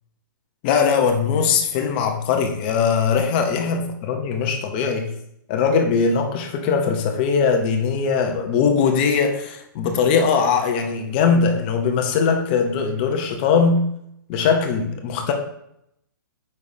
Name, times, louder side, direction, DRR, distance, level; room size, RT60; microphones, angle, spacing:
voice 1, 0.6-5.1 5.5-13.8 14.3-15.3, left 5 dB, 25° left, 4 dB, 0.6 m, -20 dB
6.8 x 5.3 x 2.6 m, 0.77 s
hypercardioid pair, 160°, 11 cm